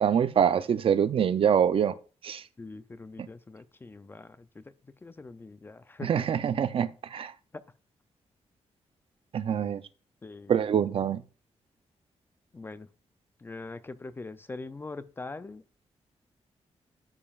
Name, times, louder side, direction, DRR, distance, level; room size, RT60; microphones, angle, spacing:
voice 1, 0.0-1.9 2.2-2.4 3.2-3.3 6.0-7.3 9.3-9.8 10.5-11.2, right 8 dB, 55° right, 0.5 m, -25 dB
voice 2, 2.6-4.6 5.0-6.3 7.5-7.6 10.2-10.5 12.5-12.9 13.4-15.8, left 3 dB, 20° left, 0.4 m, -42 dB
13.0 x 5.3 x 2.4 m
wide cardioid pair, 155°, 11 cm